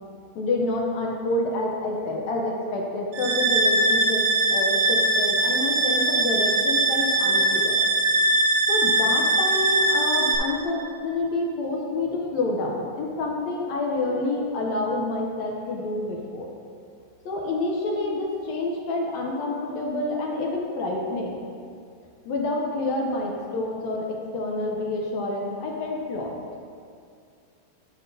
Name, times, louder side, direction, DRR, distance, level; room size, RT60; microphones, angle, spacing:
voice 1, 0.3-7.8 8.7-16.5 17.2-21.4 22.2-26.3, left 2 dB, 75° left, -1 dB, 1.7 m, -28 dB
sound 1, 3.1-10.4, right 2 dB, 85° right, 2.3 m, -21 dB
12.0 x 5.6 x 2.7 m, 2.3 s
omnidirectional pair, 4.0 m